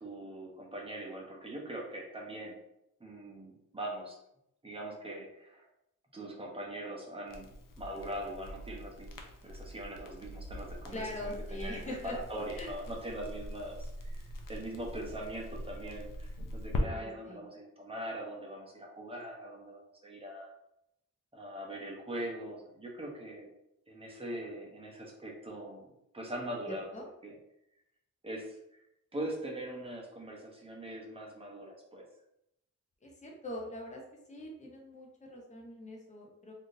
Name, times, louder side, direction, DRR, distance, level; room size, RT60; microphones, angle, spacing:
voice 1, 0.0-2.6 3.0-4.2 4.6-5.7 6.1-9.2 9.4-20.5 21.3-23.5 23.9-25.9 26.1-26.9 27.2-27.3 28.2-28.6 29.1-32.1, right 1 dB, 15° right, -1 dB, 0.7 m, -42 dB
Crackle, 7.3-16.8, left 1 dB, 80° left, 0.6 m, -41 dB
voice 2, 10.9-12.2 12.6-12.7 16.9-17.4 26.6-27.1 33.0-34.0 34.3-36.5, left 1 dB, 20° left, -1 dB, 0.6 m, -42 dB
3.4 x 2.6 x 2.6 m, 0.81 s
wide cardioid pair, 155°, 32 cm